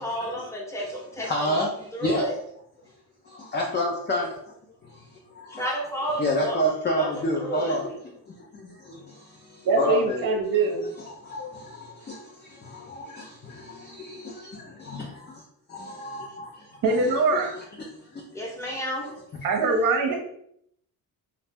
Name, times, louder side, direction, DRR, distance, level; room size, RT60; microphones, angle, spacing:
voice 1, 0.0-1.6 1.9-2.3 5.6-6.6 6.9-7.1 7.4-7.8 18.3-19.1, equal, 10° left, -3 dB, 1.1 m, -31 dB
voice 2, 1.2-1.7 2.0-2.2 3.3-4.5 4.8-5.1 5.3-5.6 6.2-7.9 8.5-10.2 11.2-15.4 15.7-17.5 18.1-18.2 18.7-18.8, equal, 30° left, -2 dB, 0.6 m, -30 dB
voice 3, 9.6-10.8 16.8-17.5 19.4-20.2, right 3 dB, 60° right, 2 dB, 0.7 m, -22 dB
2.7 x 2.0 x 3.4 m, 0.70 s
cardioid pair, 85°, 37 cm